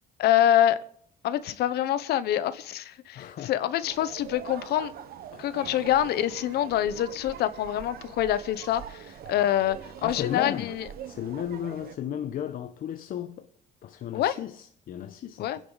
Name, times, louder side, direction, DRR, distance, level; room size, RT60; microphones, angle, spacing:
voice 1, 0.2-0.8 1.2-4.9 5.4-10.9 14.1-14.4 15.4-15.6, left 11 dB, 75° left, 1.0 m, -26 dB
voice 2, 3.1-3.5 5.3-5.4 10.0-10.7 11.0-13.5 13.8-15.5, left 10 dB, 55° left, 0.9 m, -34 dB
sound 1, 3.8-12.0, right 9 dB, 65° right, 1.1 m, -43 dB
27.0 x 10.5 x 4.0 m
cardioid pair, 110°, 17 cm